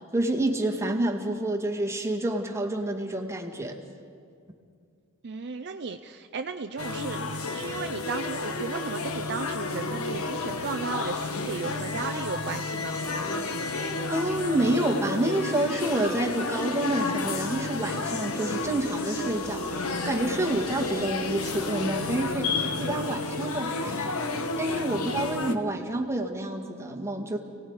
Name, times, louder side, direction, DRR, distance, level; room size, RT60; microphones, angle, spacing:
voice 1, 0.1-3.7 14.1-19.8 20.0-22.5 22.8-24.2 24.6-27.4, right 1 dB, 10° right, 0 dB, 1.8 m, -28 dB
voice 2, 5.2-13.0 24.9-25.2, right 4 dB, 50° right, 7 dB, 0.6 m, -35 dB
sound 1, 6.8-25.5, left 3 dB, 70° left, 1.2 m, -31 dB
29.5 x 18.5 x 4.8 m, 2.3 s
head